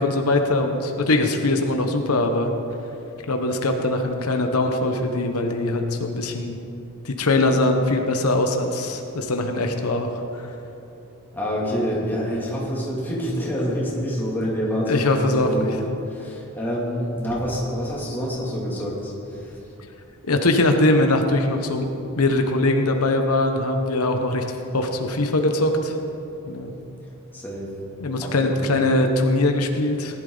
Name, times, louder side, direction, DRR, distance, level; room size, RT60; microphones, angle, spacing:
voice 1, 0.0-2.5 3.3-6.6 7.0-10.5 14.9-15.8 20.3-21.9 22.2-26.0 26.5-26.7 28.0-30.2, left 2 dB, 90° left, 5 dB, 1.1 m, -22 dB
voice 2, 11.3-19.6 27.3-27.7 28.2-28.7, equal, 10° left, -5 dB, 2.5 m, -27 dB
18.0 x 11.5 x 3.9 m, 2.9 s
head